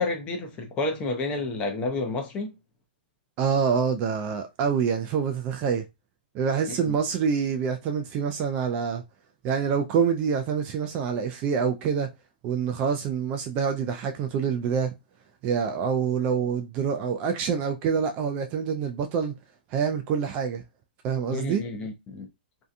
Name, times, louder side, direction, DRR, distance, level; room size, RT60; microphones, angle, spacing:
voice 1, 0.0-2.5 6.7-7.0 21.3-22.3, left 3 dB, 20° left, 0.6 m, -30 dB
voice 2, 3.4-5.8 6.3-9.0 9.4-12.1 12.4-14.9 15.4-19.3 19.7-20.6 21.0-21.6, right 6 dB, 30° right, 0.3 m, -26 dB
2.7 x 2.2 x 2.5 m
hypercardioid pair, 150°, 5 cm